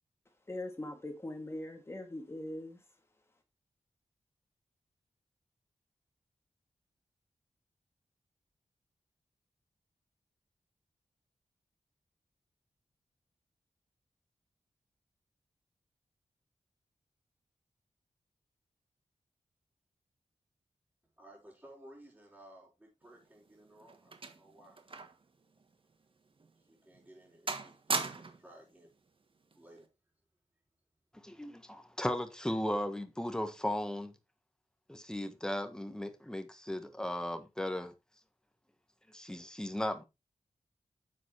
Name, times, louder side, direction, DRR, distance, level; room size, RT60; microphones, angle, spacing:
voice 1, 0.5-2.8, left 1 dB, 20° left, 2.7 m, -41 dB
voice 2, 21.2-24.8 26.6-28.9 29.5-29.9, right 1 dB, 10° right, 5.1 m, -57 dB
sound 1, 23.2-25.3 25.6-25.7 26.4-26.5 26.9-27.2 27.5-28.5 29.5-29.8, right 4 dB, 50° right, 1.4 m, -38 dB
voice 3, 31.2-34.1 34.9-37.9 39.1-40.0, left 1 dB, 5° left, 1.5 m, -36 dB
10.0 x 7.3 x 3.3 m
wide cardioid pair, 110°, 12 cm